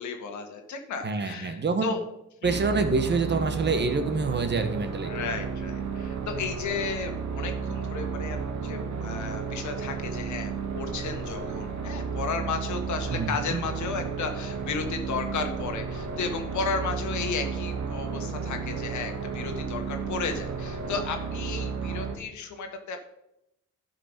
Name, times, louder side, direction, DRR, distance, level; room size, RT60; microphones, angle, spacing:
voice 1, 0.0-2.0 2.4-2.5 5.0-8.4 8.6-23.0, left 5 dB, 70° left, 5 dB, 1.7 m, -34 dB
voice 2, 1.0-2.0 2.4-5.1 13.1-13.6, right 4 dB, 35° right, 8 dB, 1.3 m, -26 dB
sound 1, 2.4-22.2, right 5 dB, 70° right, 1.5 m, -33 dB
12.0 x 5.7 x 5.1 m, 0.84 s
cardioid pair, 90°, 30 cm